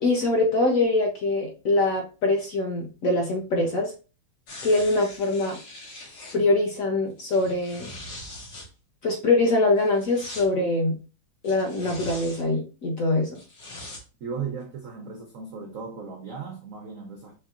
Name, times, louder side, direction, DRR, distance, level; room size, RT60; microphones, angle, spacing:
voice 1, 0.0-3.9 4.6-5.6 6.3-7.9 9.0-11.0 11.4-13.3, left 2 dB, 60° left, 0.9 m, -23 dB
sound 1, 4.5-6.4 7.2-8.7 9.8-10.5 11.4-12.4 13.3-14.0 14.6-14.7, left 1 dB, 80° left, 2.4 m, -42 dB
voice 2, 14.2-17.3, right 6 dB, 85° right, 0.7 m, -36 dB
4.7 x 3.2 x 2.4 m
omnidirectional pair, 2.3 m